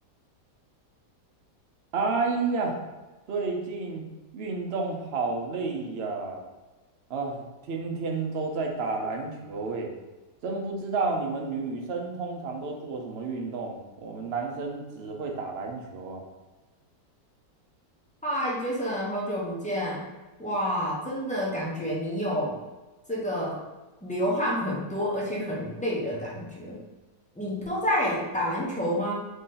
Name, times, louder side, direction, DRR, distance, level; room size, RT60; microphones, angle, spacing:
voice 1, 1.9-2.8 3.3-4.0 4.3-6.4 7.1-9.9 10.4-16.2, right 4 dB, 65° right, 1 dB, 0.6 m, -31 dB
voice 2, 18.2-20.0 20.4-22.5 23.1-23.6 24.0-26.8 27.4-29.1, equal, 10° left, -5 dB, 0.5 m, -29 dB
4.0 x 3.2 x 3.8 m, 1.2 s
omnidirectional pair, 1.9 m